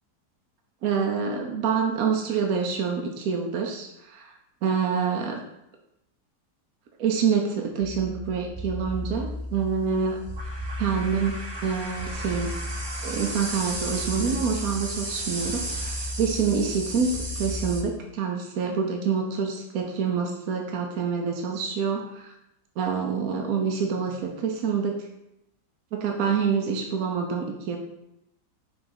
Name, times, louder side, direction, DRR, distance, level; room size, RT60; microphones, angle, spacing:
voice 1, 0.8-4.3 4.6-5.4 7.0-10.2 10.8-12.5 13.0-22.3 22.8-25.0 25.9-27.8, right 6 dB, 65° right, 2 dB, 1.1 m, -27 dB
sound 1, 7.8-17.8, right 1 dB, 40° right, 0.3 m, -33 dB
5.9 x 3.7 x 5.5 m, 0.84 s
omnidirectional pair, 1.8 m